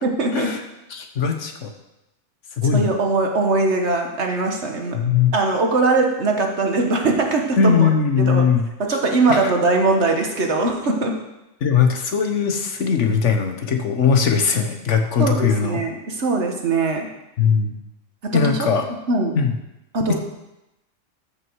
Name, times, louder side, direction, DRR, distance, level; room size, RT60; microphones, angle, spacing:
voice 1, 0.0-0.5 2.6-5.0 5.3-7.9 8.2-8.4 8.9-11.1 15.2-17.1 18.2-18.6 19.1-19.3 19.9-20.1, right 3 dB, 60° right, 2 dB, 1.6 m, -21 dB
voice 2, 0.9-1.7 2.6-2.9 4.9-5.3 7.6-8.7 9.3-9.5 11.6-15.8 17.4-17.7 18.3-18.8 19.3-19.5 20.1-20.2, left 6 dB, 70° left, 5 dB, 1.4 m, -19 dB
13.5 x 6.1 x 4.7 m, 0.93 s
omnidirectional pair, 1.3 m